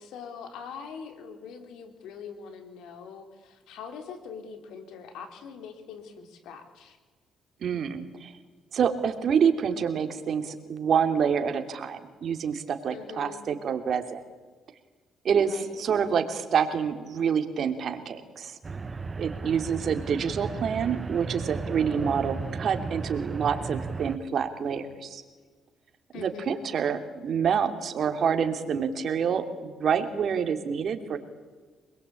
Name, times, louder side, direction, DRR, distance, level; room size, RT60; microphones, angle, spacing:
voice 1, 0.0-7.0 12.9-13.5 15.4-15.8 19.4-19.6 26.1-26.7, left 6 dB, 85° left, 7 dB, 4.0 m, -43 dB
voice 2, 7.6-8.3 8.7-14.2 15.2-18.5 19.2-25.2 26.1-31.2, right 7 dB, 60° right, 7 dB, 3.0 m, -27 dB
sound 1, 18.6-24.2, right 4 dB, 30° right, 0.9 m, -35 dB
25.5 x 22.0 x 8.6 m, 1.4 s
cardioid pair, 90°, 0 cm